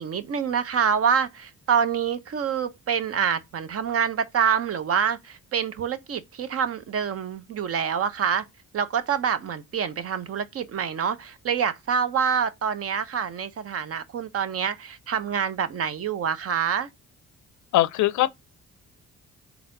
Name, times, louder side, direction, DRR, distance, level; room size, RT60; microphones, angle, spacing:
voice 1, 0.0-8.4 8.7-16.9, right 7 dB, 50° right, 0.7 m, -26 dB
voice 2, 17.7-18.4, left 15 dB, 70° left, 0.5 m, -21 dB
4.0 x 2.9 x 3.9 m
cardioid pair, 90°, 30 cm